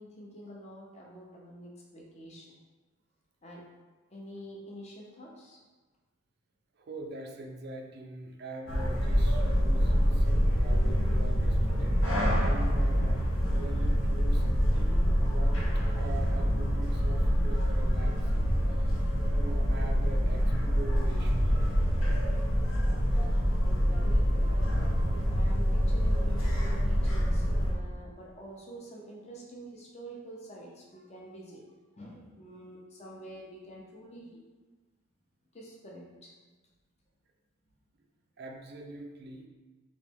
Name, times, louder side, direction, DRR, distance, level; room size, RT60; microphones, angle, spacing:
voice 1, 0.0-2.5 3.4-3.6 4.1-5.6 23.6-24.8 25.3-31.6 31.9-34.4 35.5-36.3, equal, 30° left, -2 dB, 0.5 m, -47 dB
voice 2, 6.8-15.5 16.0-18.8 19.3-21.5 38.4-39.5, right 2 dB, 50° right, 2 dB, 0.3 m, -43 dB
sound 1, 8.7-27.7, equal, 70° left, 0.9 m, -26 dB
3.0 x 2.9 x 3.5 m, 1.3 s
head